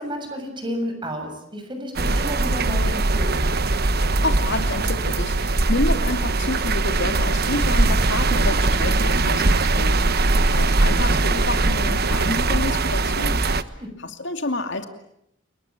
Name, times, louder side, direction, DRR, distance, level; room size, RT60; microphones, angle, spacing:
voice 1, 0.0-3.5 10.2-10.5 13.8-13.9, equal, 25° right, 5 dB, 7.1 m, -31 dB
sound 1, 1.9-13.6, right 2 dB, 55° right, 1.2 m, -21 dB
voice 2, 4.2-13.4 14.0-14.9, left 2 dB, 65° left, 6 dB, 2.6 m, -29 dB
30.0 x 21.0 x 8.8 m, 0.77 s
head